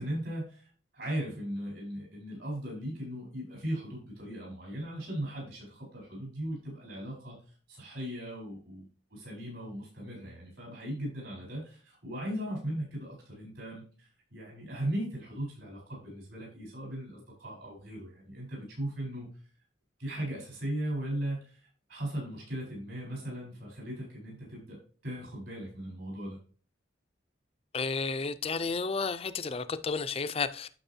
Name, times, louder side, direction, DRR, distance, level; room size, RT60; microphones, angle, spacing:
voice 1, 0.0-7.4 7.7-19.3 20.0-24.8 25.0-26.4, right 1 dB, 75° right, 4.3 m, -38 dB
voice 2, 27.7-30.7, left 4 dB, 30° left, 0.5 m, -32 dB
10.0 x 6.5 x 2.8 m
head